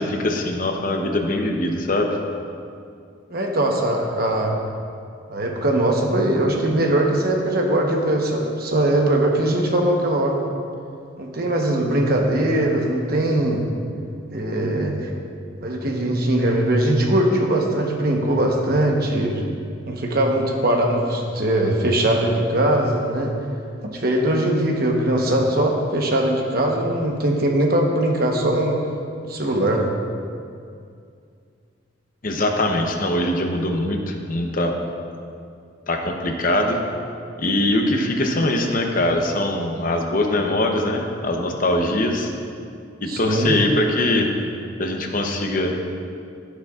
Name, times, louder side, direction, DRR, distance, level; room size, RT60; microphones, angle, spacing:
voice 1, 0.0-2.1 32.2-34.7 35.9-36.8 37.4-42.3 43.0-44.3 44.8-45.7, left 1 dB, 45° left, 3 dB, 0.8 m, -22 dB
voice 2, 3.3-4.6 5.3-10.4 11.2-13.7 14.3-15.1 15.6-19.4 19.9-23.3 23.8-28.8 29.2-29.8 43.1-43.5, right 1 dB, 50° right, 1 dB, 1.0 m, -21 dB
11.5 x 10.0 x 2.4 m, 2.4 s
head